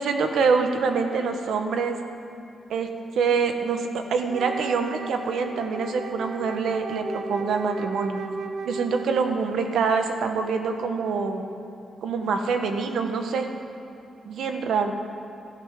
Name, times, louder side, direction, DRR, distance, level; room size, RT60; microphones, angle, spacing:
voice 1, 0.0-2.0 2.7-2.9 3.2-8.2 8.6-11.4 12.0-13.5 14.2-14.9, right 5 dB, 85° right, 5 dB, 1.1 m, -25 dB
Wind instrument woodwind instrument, 4.3-9.5, right 3 dB, 60° right, 0.8 m, -35 dB
18.0 x 13.5 x 3.7 m, 2.7 s
cardioid pair, 120°, 0 cm